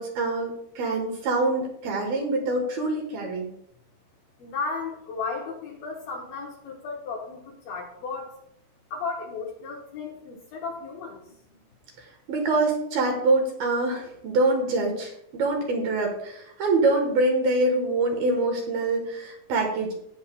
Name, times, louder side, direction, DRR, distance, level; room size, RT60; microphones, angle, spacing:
voice 1, 0.0-3.5 12.3-19.9, right 2 dB, 65° right, 1 dB, 2.8 m, -25 dB
voice 2, 4.4-8.4 8.9-11.6, left 4 dB, 70° left, -1 dB, 2.5 m, -34 dB
18.0 x 7.1 x 2.3 m, 0.75 s
omnidirectional pair, 5.4 m